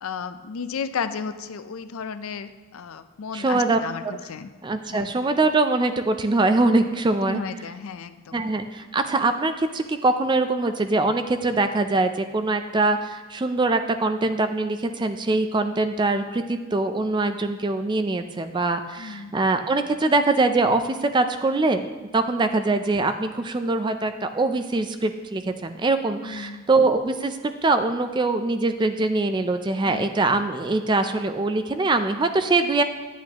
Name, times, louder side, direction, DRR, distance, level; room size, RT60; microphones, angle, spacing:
voice 1, 0.0-4.5 4.9-5.2 7.3-8.5 19.0-19.3 26.2-26.6 29.8-30.1, left 6 dB, 70° left, 11 dB, 0.4 m, -33 dB
voice 2, 3.3-3.8 4.0-4.2 4.6-7.4 8.3-21.9 22.1-32.8, right 2 dB, 20° right, 8 dB, 0.3 m, -23 dB
10.5 x 8.3 x 2.9 m, 1.4 s
head